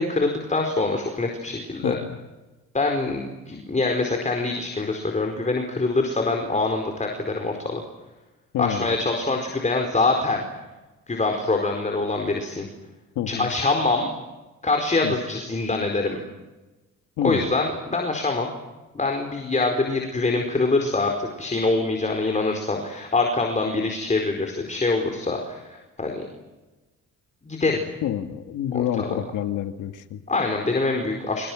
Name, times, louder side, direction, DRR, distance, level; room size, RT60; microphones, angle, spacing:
voice 1, 0.0-2.0 2.7-7.8 8.6-10.4 11.1-12.7 13.3-14.1 14.6-16.2 17.2-18.5 18.9-26.3 27.4-27.8 28.7-29.2 30.3-31.5, left 3 dB, 25° left, 3 dB, 4.7 m, -24 dB
voice 2, 1.8-2.2 8.5-9.0 13.2-13.5 15.0-15.2 17.2-17.5 28.0-30.2, left 10 dB, 85° left, 8 dB, 2.1 m, -28 dB
28.5 x 27.0 x 6.4 m, 1.1 s
cardioid pair, 90°, 30 cm